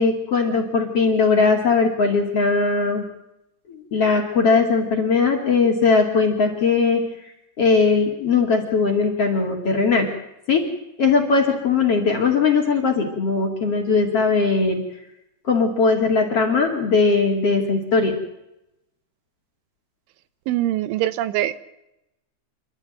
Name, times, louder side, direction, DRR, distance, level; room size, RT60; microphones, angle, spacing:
voice 1, 0.0-3.0 3.7-7.0 7.6-10.1 10.5-10.6 11.0-14.8 15.4-18.2, left 4 dB, 40° left, 2 dB, 2.6 m, -19 dB
voice 2, 20.5-21.6, right 13 dB, 90° right, 15 dB, 3.4 m, -23 dB
28.5 x 12.5 x 9.0 m, 0.87 s
omnidirectional pair, 5.4 m